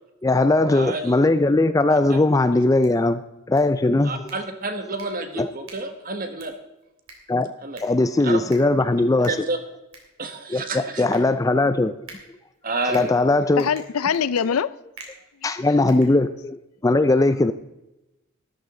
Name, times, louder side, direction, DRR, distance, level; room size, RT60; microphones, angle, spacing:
voice 1, 0.2-3.2 3.5-4.2 5.4-5.5 7.3-7.5 7.8-9.5 10.5-11.9 12.9-13.7 15.4-17.5, left 2 dB, 15° left, 0.3 m, -19 dB
voice 2, 0.7-1.2 2.1-2.2 4.0-6.5 7.6-7.8 8.2-8.4 9.3-9.6 10.2-11.0 12.6-13.1, right 2 dB, 40° right, 1.4 m, -29 dB
sound 1, 2.6-16.7, right 3 dB, 70° right, 3.3 m, -49 dB
voice 3, 13.5-14.7, left 7 dB, 85° left, 0.5 m, -23 dB
13.0 x 12.5 x 3.8 m
head